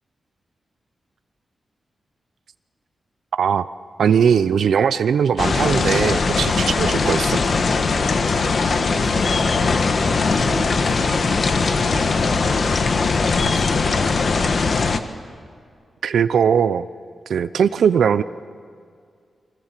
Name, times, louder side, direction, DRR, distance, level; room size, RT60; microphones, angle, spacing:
voice 1, 4.0-7.4 16.0-16.9 17.3-18.2, right 7 dB, 85° right, 13 dB, 0.6 m, -19 dB
sound 1, 5.4-15.0, left 4 dB, 45° left, 1.4 m, -20 dB
voice 2, 8.3-14.1, right 1 dB, 5° right, 1 dB, 4.5 m, -36 dB
29.5 x 23.5 x 7.5 m, 2.2 s
wide cardioid pair, 180°, 0 cm